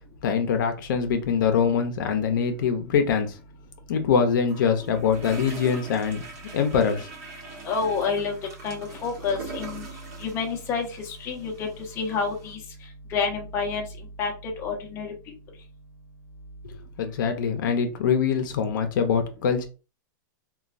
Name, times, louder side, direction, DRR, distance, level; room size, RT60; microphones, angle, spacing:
voice 1, 0.2-3.4 3.9-6.2 6.5-7.1 16.6-19.7, left 6 dB, 75° left, 6 dB, 0.6 m, -24 dB
sound 1, 4.5-12.5, right 3 dB, 50° right, 0.9 m, -42 dB
voice 2, 7.6-8.3 8.6-9.9 10.2-11.7 12.0-12.6 13.1-13.8 14.2-15.1, left 5 dB, 25° left, 1 dB, 0.7 m, -28 dB
3.0 x 2.2 x 2.4 m, 0.32 s
supercardioid pair, 160°, 11 cm